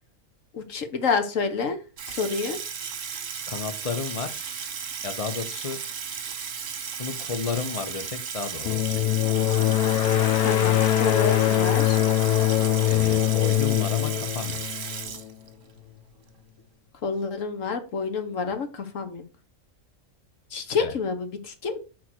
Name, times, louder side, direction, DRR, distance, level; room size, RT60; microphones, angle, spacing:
voice 1, 0.5-1.8 2.1-2.6 10.4-12.0 17.0-19.2 20.5-21.8, left 5 dB, 60° left, 7 dB, 1.3 m, -28 dB
Water tap faucet / Sink (filling or washing), 2.0-15.7, right 7 dB, 60° right, 1.3 m, -35 dB
voice 2, 3.5-4.4 5.0-5.8 7.0-9.0 12.8-14.6 20.8-20.9, left 5 dB, 35° left, 8 dB, 0.6 m, -32 dB
sound 1, 8.6-15.3, left 13 dB, 85° left, 1.1 m, -22 dB
6.1 x 4.2 x 4.3 m, 0.33 s
omnidirectional pair, 1.6 m